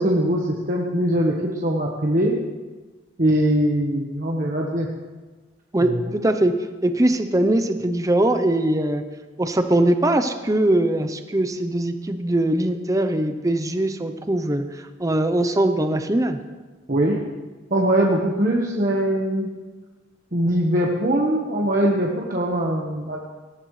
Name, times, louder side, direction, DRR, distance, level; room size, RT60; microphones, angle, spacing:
voice 1, 0.0-2.3 3.2-4.9 5.8-5.9 16.9-17.2 17.7-19.5 20.3-23.2, right 1 dB, 45° right, -2 dB, 1.3 m, -21 dB
voice 2, 5.7-6.5 6.8-9.0 9.4-16.4, right 1 dB, 20° right, 8 dB, 0.7 m, -21 dB
18.5 x 14.0 x 3.2 m, 1.2 s
head